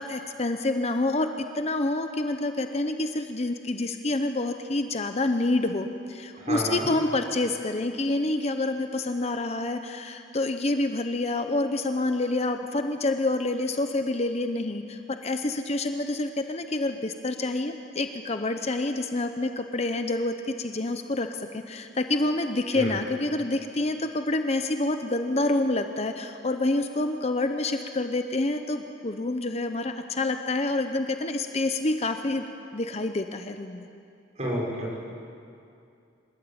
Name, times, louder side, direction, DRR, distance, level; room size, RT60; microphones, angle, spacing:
voice 1, 0.0-32.4 32.7-33.9, left 2 dB, 35° left, 7 dB, 0.8 m, -27 dB
voice 2, 6.4-6.9 22.7-23.0 34.4-35.0, equal, 35° right, -3 dB, 5.4 m, -30 dB
27.0 x 13.5 x 8.7 m, 2.5 s
head